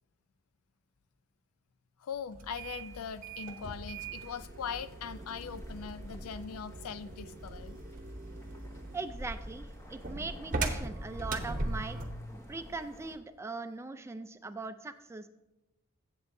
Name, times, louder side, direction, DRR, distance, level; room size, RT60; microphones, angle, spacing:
voice 1, 2.0-7.8, left 6 dB, 90° left, 14 dB, 0.4 m, -41 dB
sound 1, 2.3-12.2, right 2 dB, 40° right, 0.8 m, -40 dB
sound 2, 2.5-13.2, equal, 15° left, 0.8 m, -51 dB
voice 2, 8.9-12.0 12.5-15.3, right 3 dB, 10° right, 10 dB, 0.3 m, -40 dB
15.5 x 6.9 x 2.7 m, 1.0 s
head